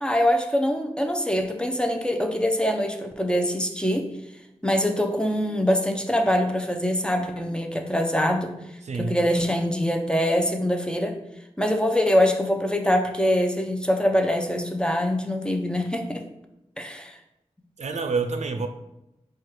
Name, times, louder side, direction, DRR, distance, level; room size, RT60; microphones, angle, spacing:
voice 1, 0.0-4.1 4.6-8.6 9.0-11.2 11.6-16.2 16.8-17.2, equal, 10° left, 4 dB, 0.6 m, -24 dB
voice 2, 8.8-9.2 17.8-18.7, right 4 dB, 80° right, 7 dB, 0.4 m, -27 dB
4.3 x 2.4 x 4.7 m, 0.90 s
cardioid pair, 40°, 12 cm